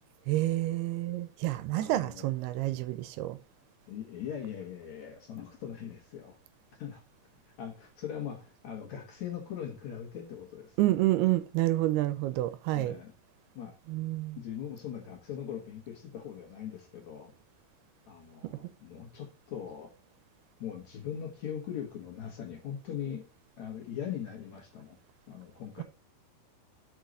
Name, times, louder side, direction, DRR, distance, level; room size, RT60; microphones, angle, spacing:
voice 1, 0.3-3.4 10.8-13.0 13.9-14.4 18.4-18.5 25.8-25.9, right 16 dB, 85° right, 2.6 m, -29 dB
voice 2, 1.8-2.3 3.9-6.4 6.8-7.0 7.6-10.8 12.7-13.1 13.6-13.8 14.4-17.3 18.1-19.9 20.6-23.3 23.6-25.0 25.3-25.8, left 9 dB, 60° left, 2.2 m, -40 dB
6.5 x 5.4 x 6.2 m
omnidirectional pair, 4.6 m